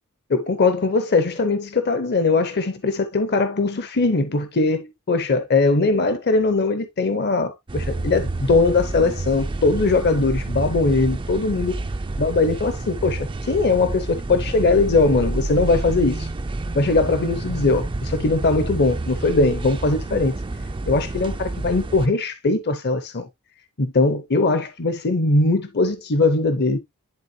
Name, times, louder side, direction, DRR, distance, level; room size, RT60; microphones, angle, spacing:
voice 1, 0.3-11.8 12.2-16.3 16.7-20.3 20.9-23.3 23.8-26.8, left 3 dB, 50° left, 0.8 m, -20 dB
sound 1, 7.7-22.1, right 2 dB, 20° right, 0.4 m, -29 dB
11.0 x 3.7 x 2.7 m
head